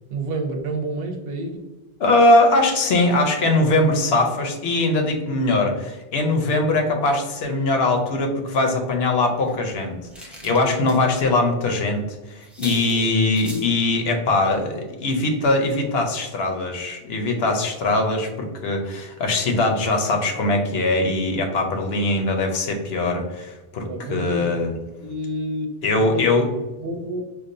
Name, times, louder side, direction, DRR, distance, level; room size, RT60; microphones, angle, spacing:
voice 1, 0.1-1.7 11.7-11.8 12.6-13.0 23.9-24.6 25.0-25.7 26.0-26.5 26.8-27.2, right 2 dB, 70° right, 3 dB, 0.8 m, -29 dB
voice 2, 2.0-12.0 12.3-24.7 25.8-26.5, left 2 dB, 80° left, 4 dB, 0.9 m, -21 dB
sound 1, 9.4-11.3 11.7-11.8 12.1-12.2 12.4-13.7 14.5-14.7 15.0-15.2 15.4-15.5, equal, ahead, 0.3 m, -42 dB
4.6 x 2.4 x 2.6 m, 1.1 s
omnidirectional pair, 1.1 m